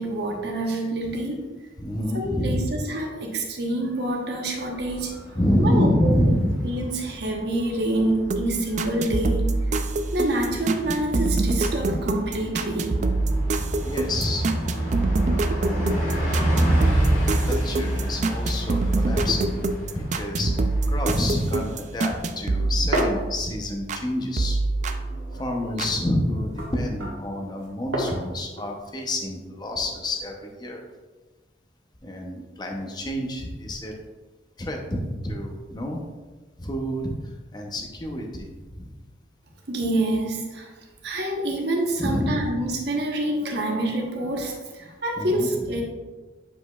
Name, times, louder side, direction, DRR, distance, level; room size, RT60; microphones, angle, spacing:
voice 1, 0.0-1.5 2.1-5.4 5.6-6.1 6.6-9.6 10.1-13.0 39.7-40.7 41.0-45.8, right 1 dB, 60° right, 1 dB, 1.1 m, -27 dB
voice 2, 1.8-2.7 5.3-6.8 11.8-12.0 13.8-14.7 15.6-19.7 20.0-20.5 20.9-24.6 25.3-30.8 32.0-33.9 34.6-36.0 36.6-38.5 38.8-38.9 42.0-42.6 45.2-45.8, left 1 dB, 20° left, 2 dB, 0.7 m, -28 dB
Bus, 4.6-21.7, right 1 dB, 40° left, 1.9 m, -29 dB
sound 1, 8.2-24.1 24.4-25.9, right 2 dB, 40° right, 0.3 m, -26 dB
sound 2, 22.2-24.0 24.4-30.3, right 1 dB, 80° right, 1.5 m, -33 dB
8.0 x 5.0 x 2.3 m, 1.3 s
head